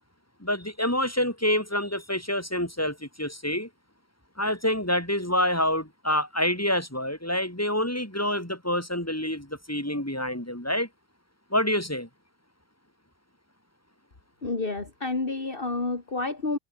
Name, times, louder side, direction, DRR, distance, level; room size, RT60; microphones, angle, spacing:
voice 1, 0.4-3.7 4.4-10.9 11.5-12.1, left 1 dB, 10° left, 5.5 m, -27 dB
voice 2, 14.4-16.6, left 3 dB, 50° left, 2.7 m, -29 dB
omnidirectional pair, 1.2 m